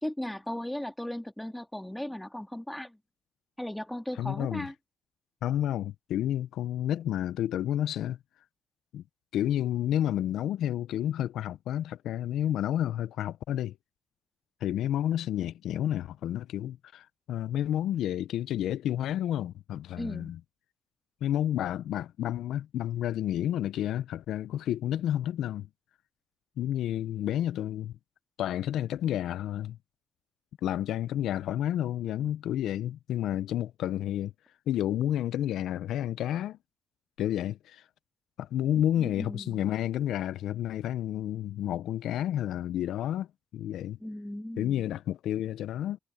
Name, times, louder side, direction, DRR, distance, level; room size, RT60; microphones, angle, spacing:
voice 1, 0.0-3.0 3.6-4.7 20.0-20.3 39.0-39.7 44.0-44.8, left 1 dB, 5° left, 2.3 m, -37 dB
voice 2, 4.2-4.7 5.4-8.2 8.9-9.0 9.3-13.8 14.6-20.4 21.2-25.7 26.6-27.9 28.4-29.8 30.6-34.3 34.7-36.6 37.2-37.8 38.4-43.3 43.5-44.0 44.6-46.0, left 11 dB, 80° left, 0.6 m, -30 dB
cardioid pair, 90°, 0 cm